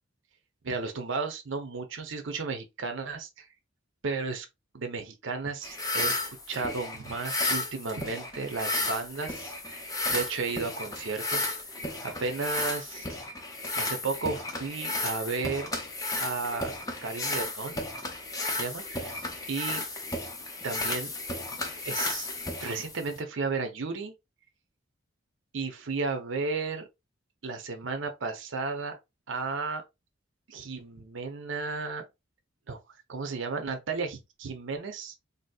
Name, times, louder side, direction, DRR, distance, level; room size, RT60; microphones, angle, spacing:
voice 1, 0.6-3.5 4.0-4.5 4.7-6.2 6.5-11.6 12.0-13.1 13.7-15.7 16.2-16.7 17.0-17.8 18.5-19.8 20.6-21.1 21.5-21.6 21.8-22.3 22.6-24.2 25.5-26.9 27.4-29.0 29.3-29.8 30.5-32.1 32.7-35.1, right 4 dB, 65° right, 0.6 m, -34 dB
sound 1, 5.6-23.2, left 2 dB, 15° left, 0.5 m, -33 dB
3.8 x 2.7 x 2.3 m
head